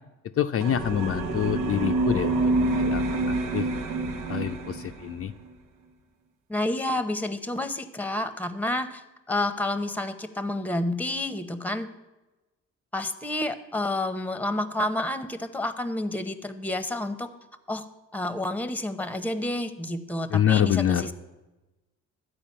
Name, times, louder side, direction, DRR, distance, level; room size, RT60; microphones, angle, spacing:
voice 1, 0.4-3.7 4.3-5.3 20.3-21.1, left 10 dB, 50° left, 6 dB, 0.6 m, -26 dB
sound 1, 0.6-5.3, right 2 dB, 85° right, 1.1 m, -27 dB
voice 2, 6.5-9.0 9.3-11.9 12.9-17.3 17.7-17.8 18.1-21.1, left 1 dB, 5° left, 11 dB, 0.9 m, -29 dB
12.5 x 4.9 x 8.6 m, 1.1 s
cardioid pair, 90°, 30 cm